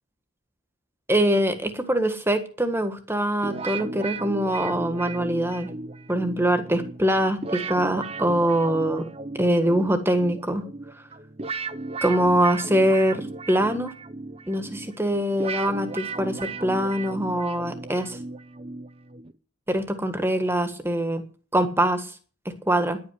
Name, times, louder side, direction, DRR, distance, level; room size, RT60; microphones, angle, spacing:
voice 1, 1.1-5.7 6.1-9.1 9.3-10.7 12.0-13.9 14.5-18.2 19.7-21.2 21.5-22.1 22.4-23.0, right 1 dB, 10° right, 8 dB, 1.5 m, -23 dB
sound 1, 3.4-19.4, right 3 dB, 30° right, 0.6 m, -36 dB
11.0 x 8.6 x 9.8 m, 0.40 s
head